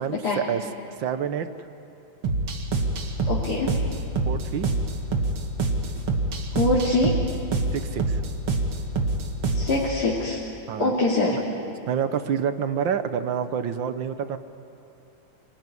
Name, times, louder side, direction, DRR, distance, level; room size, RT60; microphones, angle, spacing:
voice 1, 0.0-1.7 4.2-4.7 7.7-8.2 10.7-10.9 11.3-11.4 11.9-14.4, right 8 dB, 70° right, 11 dB, 1.6 m, -28 dB
sound 1, 2.2-9.8, right 3 dB, 85° right, 2.8 m, -26 dB
voice 2, 3.3-3.7 6.5-7.2 9.5-10.4 10.8-11.4, left 2 dB, 50° left, -6 dB, 3.3 m, -23 dB
25.0 x 20.0 x 9.7 m, 2.9 s
omnidirectional pair, 2.3 m